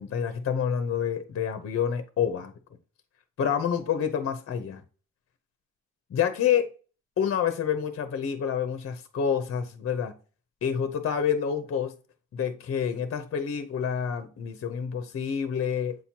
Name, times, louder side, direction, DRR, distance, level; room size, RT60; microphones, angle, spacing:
voice 1, 0.0-2.5 3.4-4.8 6.1-6.7 7.2-10.1 10.6-11.9 12.3-16.0, left 8 dB, 50° left, 0.8 m, -28 dB
7.8 x 4.4 x 2.8 m
cardioid pair, 90°, 30 cm